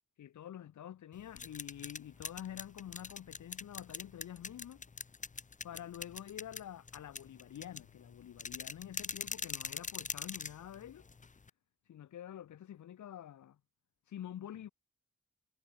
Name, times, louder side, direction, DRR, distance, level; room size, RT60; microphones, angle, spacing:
voice 1, 0.2-4.8 5.6-11.0 11.9-13.6 14.1-14.7, left 10 dB, 75° left, 0.5 m, -47 dB
sound 1, 1.1-11.5, left 4 dB, 25° left, 0.5 m, -44 dB
wide cardioid pair, 75°, 30 cm